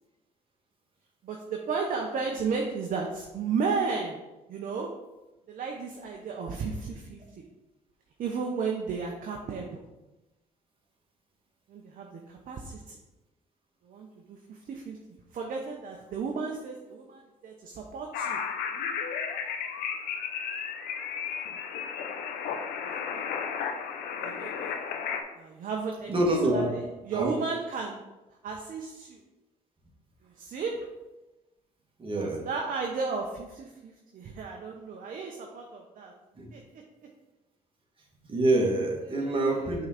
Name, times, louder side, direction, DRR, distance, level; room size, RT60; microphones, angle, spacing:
voice 1, 1.2-4.2 4.5-4.9 5.5-7.2 8.2-9.8 11.7-13.0 13.8-15.0 15.3-18.4 23.1-23.3 24.2-24.7 25.4-26.1 26.4-28.0 28.4-29.2 30.2-30.9 32.2-36.1 36.5-36.6 39.1-39.7, right 5 dB, 60° right, 1 dB, 0.9 m, -34 dB
sound 1, 18.1-25.2, left 7 dB, 90° left, 0.7 m, -33 dB
voice 2, 26.1-26.8 27.1-27.3 32.0-32.5 36.4-36.5 38.2-39.9, right 2 dB, 35° right, -1 dB, 2.0 m, -26 dB
5.7 x 3.9 x 5.9 m, 1.0 s
supercardioid pair, 75°, 16 cm